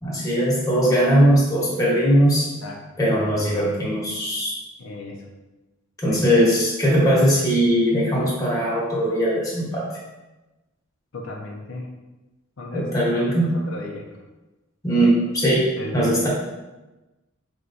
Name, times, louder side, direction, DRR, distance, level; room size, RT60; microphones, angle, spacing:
voice 1, 0.0-2.5 3.0-4.5 6.0-9.8 12.7-13.6 14.8-16.3, equal, 15° left, -6 dB, 1.1 m, -20 dB
voice 2, 2.4-2.8 4.8-5.2 6.0-6.2 11.1-11.9 12.6-12.9 13.2-14.1 15.0-15.1 15.8-16.3, left 2 dB, 75° left, -1 dB, 0.6 m, -35 dB
4.6 x 3.0 x 2.6 m, 1.1 s
head